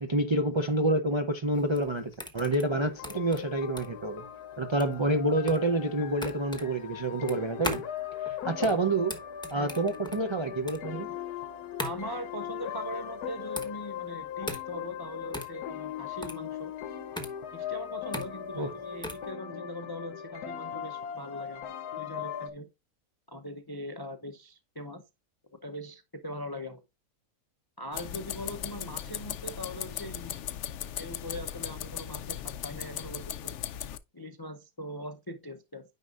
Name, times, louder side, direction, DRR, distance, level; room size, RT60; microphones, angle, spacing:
voice 1, 0.0-4.2 4.6-7.8 8.3-9.1 9.5-11.1 18.6-18.7, right 1 dB, 50° right, 0.3 m, -28 dB
sound 1, 1.5-19.3, left 1 dB, 5° left, 0.9 m, -40 dB
sound 2, 2.6-22.5, left 9 dB, 90° left, 1.3 m, -39 dB
voice 2, 11.8-16.7 17.5-22.7 23.3-25.0 25.6-26.8 27.8-30.4 30.9-33.5 34.1-35.8, equal, 35° left, 0.3 m, -41 dB
sound 3, 27.9-34.0, left 10 dB, 65° left, 0.8 m, -38 dB
9.6 x 5.4 x 2.4 m
omnidirectional pair, 1.6 m